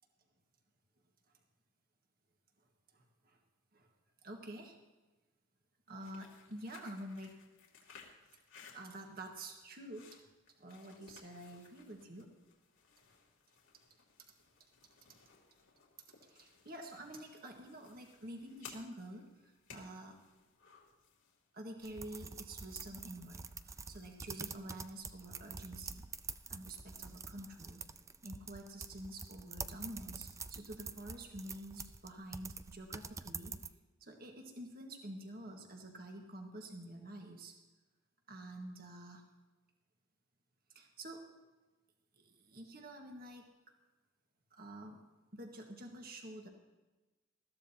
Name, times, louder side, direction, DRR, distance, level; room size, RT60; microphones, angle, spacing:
voice 1, 2.9-3.4 3.7-3.9 4.2-4.8 5.9-7.4 8.0-8.1 8.7-10.2 10.6-12.3 14.2-14.3 16.2-20.2 21.5-26.0 26.5-27.8 28.2-33.6 34.0-37.5 38.3-39.2 40.7-41.2 42.2-43.5 44.5-45.0 45.3-46.5, right 1 dB, 45° right, 2 dB, 1.7 m, -48 dB
sound 1, 5.9-21.5, left 6 dB, 85° left, 2.7 m, -60 dB
sound 2, 21.8-33.7, right 4 dB, 15° right, 0.4 m, -47 dB
20.5 x 14.0 x 2.9 m, 1.2 s
head